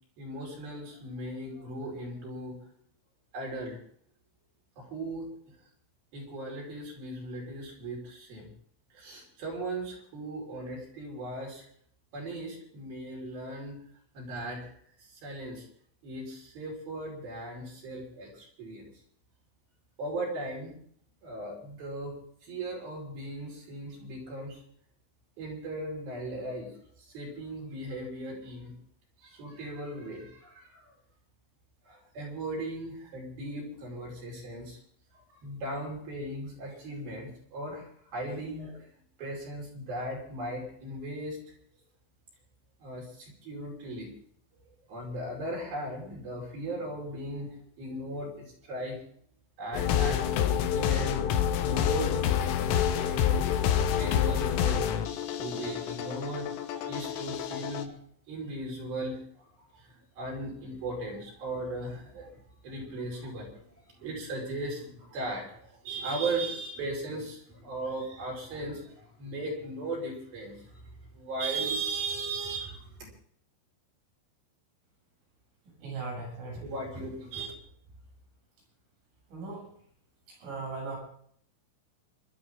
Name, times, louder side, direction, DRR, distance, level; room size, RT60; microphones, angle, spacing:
voice 1, 0.2-2.6 3.3-3.8 4.8-5.3 6.1-8.5 8.9-11.7 12.1-13.8 14.1-14.7 15.2-15.6 16.0-18.9 20.0-20.7 21.2-22.2 22.4-24.6 25.4-26.7 27.0-28.7 29.2-30.9 31.9-34.8 35.3-38.8 39.2-41.4 42.8-44.1 44.9-49.0 49.6-50.3 50.7-51.2 51.6-53.4 54.0-55.0 55.4-58.0 58.3-59.2 59.7-62.3 62.6-63.5 63.9-70.8 71.1-73.1 76.6-77.5, right 2 dB, 50° right, -1 dB, 6.6 m, -37 dB
sound 1, 49.7-57.8, left 9 dB, 90° left, 3.9 m, -28 dB
voice 2, 75.8-76.7 79.3-79.7 80.3-81.0, right 3 dB, 75° right, -2 dB, 10.5 m, -38 dB
27.0 x 12.5 x 3.7 m, 0.62 s
omnidirectional pair, 5.7 m